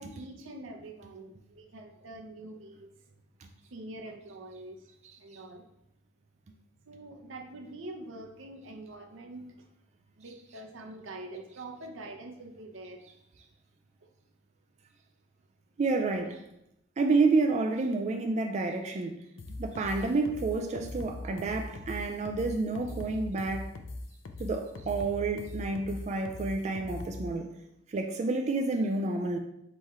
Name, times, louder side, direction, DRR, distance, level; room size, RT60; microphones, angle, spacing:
voice 1, 0.0-3.1 3.7-4.9 5.2-5.6 6.8-9.7 10.2-13.0, right 2 dB, 80° right, 4 dB, 0.6 m, -45 dB
voice 2, 15.8-16.4 17.0-19.2 19.6-23.7 24.4-27.5 27.9-29.4, right 3 dB, 35° right, 4 dB, 0.3 m, -29 dB
sound 1, 19.4-27.3, left 2 dB, 85° left, 0.5 m, -40 dB
3.6 x 3.1 x 4.2 m, 0.81 s
head